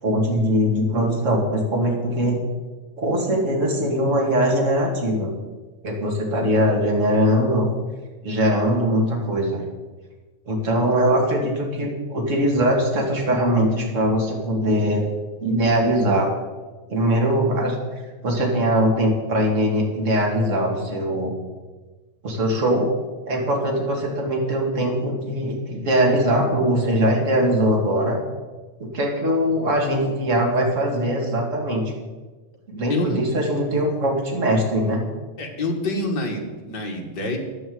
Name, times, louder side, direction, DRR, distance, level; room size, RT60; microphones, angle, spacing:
voice 1, 0.0-2.4 3.0-5.3 5.8-7.7 8.2-9.6 10.5-15.1 15.4-16.3 16.9-17.8 18.2-21.3 22.2-22.9 23.3-28.2 28.8-31.8 32.7-35.0, equal, 25° right, 0 dB, 2.7 m, -21 dB
voice 2, 35.4-37.4, left 2 dB, 40° left, 1 dB, 2.2 m, -26 dB
11.0 x 9.0 x 8.0 m, 1.3 s
omnidirectional pair, 3.4 m